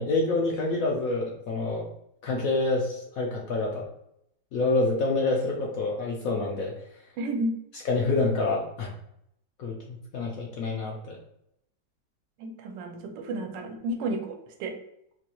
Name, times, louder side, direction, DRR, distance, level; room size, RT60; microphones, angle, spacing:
voice 1, 0.0-1.9 2.2-3.9 4.5-6.7 7.8-8.9 9.6-11.2, left 3 dB, 70° left, -1 dB, 0.8 m, -27 dB
voice 2, 7.2-7.6 12.4-14.8, right 1 dB, 85° right, 4 dB, 1.3 m, -32 dB
4.1 x 2.3 x 2.9 m, 0.76 s
omnidirectional pair, 1.9 m